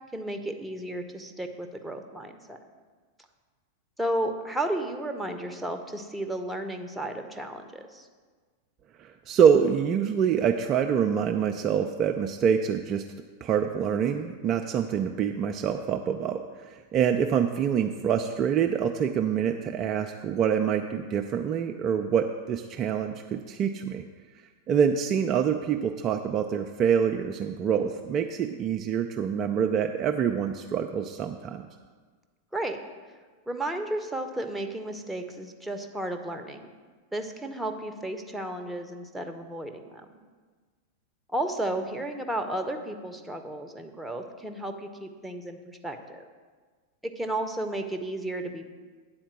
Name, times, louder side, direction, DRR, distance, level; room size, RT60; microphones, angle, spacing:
voice 1, 0.1-2.6 4.0-8.1 32.5-32.8 33.5-36.7 37.1-39.9 41.3-46.2 47.0-48.7, right 1 dB, 5° right, 4 dB, 0.9 m, -33 dB
voice 2, 9.0-13.0 13.4-24.0 24.7-31.6, right 7 dB, 30° right, 4 dB, 0.4 m, -26 dB
9.0 x 4.3 x 7.4 m, 1.5 s
figure-of-eight pair, 90°, 0 cm